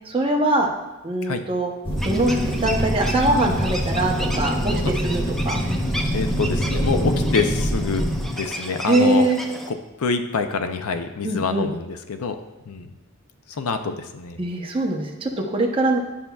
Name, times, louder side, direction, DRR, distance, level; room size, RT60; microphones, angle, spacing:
voice 1, 0.1-0.7 1.0-1.7 2.0-4.7 5.0-5.6 8.9-9.4 11.2-11.7 14.4-16.0, right 2 dB, 25° right, 0 dB, 0.8 m, -22 dB
sound 1, 1.8-8.2, equal, 25° left, 1.0 m, -24 dB
sound 2, 2.0-9.7, right 1 dB, ahead, 0.4 m, -34 dB
voice 2, 6.1-9.3 9.7-12.4 12.7-12.9 13.5-14.4, left 4 dB, 80° left, 8 dB, 0.5 m, -26 dB
11.0 x 5.7 x 2.3 m, 1.0 s
head